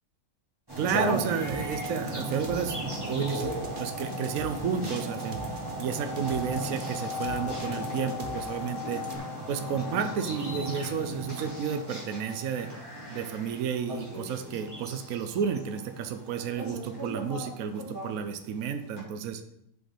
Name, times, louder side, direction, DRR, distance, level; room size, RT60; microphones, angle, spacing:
sound 1, 0.7-18.4 19.0-19.1, equal, 15° right, 2.9 m, -35 dB
voice 1, 0.8-2.8 3.1-5.4 5.8-9.0 9.5-12.7 13.1-19.5, right 7 dB, 70° right, 7 dB, 1.1 m, -32 dB
sound 2, 1.5-9.2, right 4 dB, 40° right, 0.9 m, -44 dB
7.3 x 5.4 x 6.1 m, 0.77 s
omnidirectional pair, 1.6 m